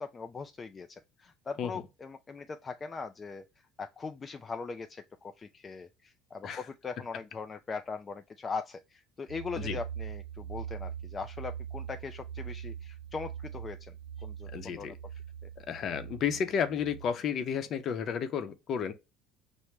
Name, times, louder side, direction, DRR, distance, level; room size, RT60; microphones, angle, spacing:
voice 1, 0.0-3.5 3.8-13.9 14.2-15.0 15.4-15.5, left 4 dB, 25° left, 0.3 m, -40 dB
sound 1, 9.3-17.1, right 8 dB, 55° right, 0.6 m, -42 dB
voice 2, 14.5-15.0 15.7-18.9, left 7 dB, 50° left, 0.7 m, -32 dB
5.8 x 2.1 x 3.2 m
supercardioid pair, 100°, 0 cm